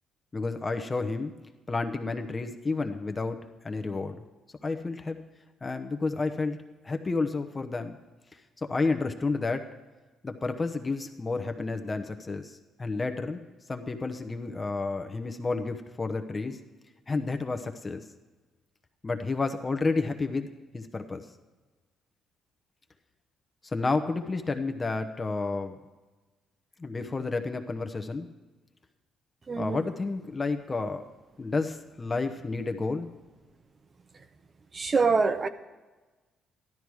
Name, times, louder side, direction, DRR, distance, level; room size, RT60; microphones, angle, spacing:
voice 1, 0.3-1.3 1.7-4.2 4.6-5.2 5.6-6.6 6.8-8.0 8.3-9.7 10.2-13.4 13.7-16.6 17.1-18.0 19.0-20.5 20.7-21.2 23.6-25.8 26.8-28.3 29.6-31.0 31.4-33.1, left 3 dB, 25° left, 7 dB, 0.9 m, -31 dB
voice 2, 29.5-29.8 34.7-35.5, right 4 dB, 35° right, 11 dB, 0.8 m, -25 dB
13.5 x 12.0 x 4.8 m, 1.2 s
cardioid pair, 95°, 0 cm